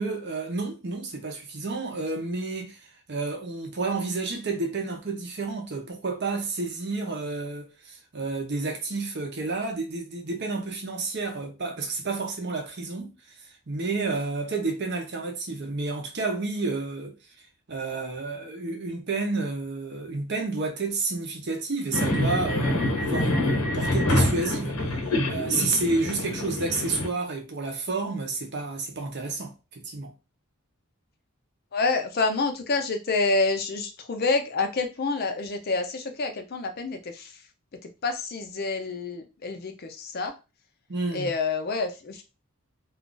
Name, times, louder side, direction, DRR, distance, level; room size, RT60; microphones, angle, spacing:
voice 1, 0.0-30.1 40.9-41.3, right 3 dB, 50° right, 0.7 m, -30 dB
sound 1, 21.9-27.1, left 1 dB, 80° left, 1.0 m, -26 dB
voice 2, 31.7-37.4 37.8-40.3 41.1-42.2, left 3 dB, 45° left, 0.5 m, -28 dB
2.4 x 2.4 x 3.8 m
head